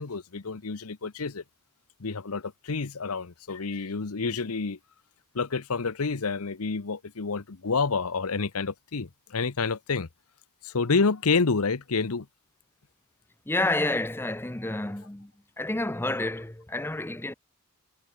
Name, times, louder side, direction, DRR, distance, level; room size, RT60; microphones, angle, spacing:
voice 1, 0.0-1.4 2.0-4.8 5.3-10.1 10.6-12.3, left 4 dB, 75° left, 0.9 m, -28 dB
voice 2, 13.5-15.3 15.6-17.3, left 2 dB, 10° left, 0.8 m, -29 dB
head